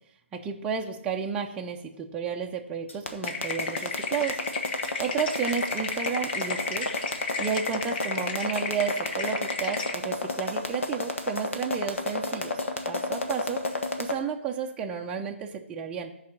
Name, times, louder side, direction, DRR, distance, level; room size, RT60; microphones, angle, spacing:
voice 1, 0.3-4.4 5.0-6.9 7.4-13.6 14.0-16.1, right 6 dB, 15° right, 1 dB, 0.6 m, -32 dB
sound 1, 2.9-14.2, left 2 dB, 85° left, 1.5 m, -31 dB
sound 2, 3.3-9.9, left 4 dB, 45° left, 1.2 m, -34 dB
14.5 x 4.8 x 5.9 m, 0.82 s
hypercardioid pair, 150°, 7 cm